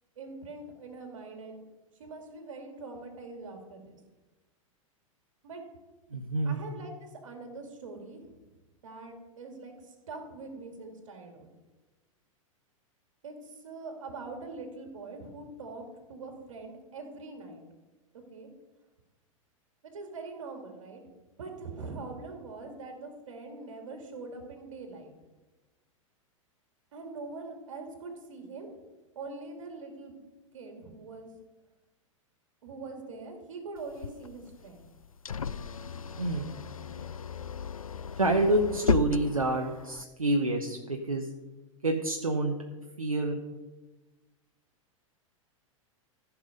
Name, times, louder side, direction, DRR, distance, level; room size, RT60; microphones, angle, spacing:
voice 1, 0.2-1.6 2.0-4.0 5.4-5.6 6.4-8.3 8.8-11.5 13.2-17.6 18.3-18.5 19.8-21.0 21.4-25.1 26.9-28.7 29.2-30.2 30.5-31.3 32.6-34.8, right 3 dB, 65° right, 4 dB, 2.4 m, -43 dB
voice 2, 6.1-6.6 36.2-36.5 38.2-41.3 41.8-42.6 43.0-43.4, right 2 dB, 85° right, 3 dB, 0.9 m, -27 dB
sound 1, 33.8-40.0, left 7 dB, 85° left, 0.4 m, -35 dB
14.5 x 6.1 x 5.1 m, 1.2 s
figure-of-eight pair, 95°, 18 cm